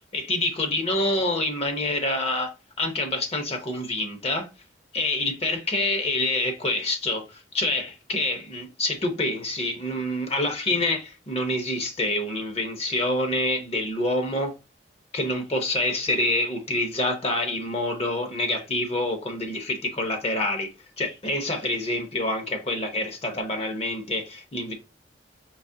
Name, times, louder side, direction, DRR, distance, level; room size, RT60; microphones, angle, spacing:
voice 1, 0.1-2.5 2.8-4.5 4.9-14.5 15.1-20.7 21.0-24.7, left 1 dB, 35° left, 0.8 m, -27 dB
4.8 x 3.1 x 2.7 m
head